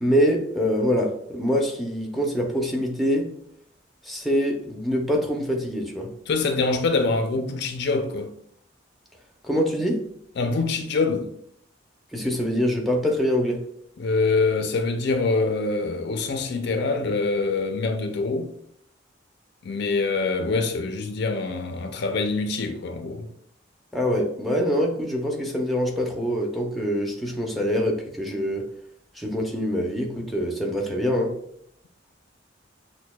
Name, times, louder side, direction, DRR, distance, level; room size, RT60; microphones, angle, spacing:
voice 1, 0.0-3.3 4.0-6.1 9.4-10.0 12.1-13.6 23.9-28.7 29.2-31.3, equal, ahead, 0.5 m, -24 dB
voice 2, 6.3-8.3 10.4-11.3 14.0-18.5 19.6-23.3, left 3 dB, 60° left, 0.4 m, -25 dB
6.1 x 2.1 x 2.2 m
head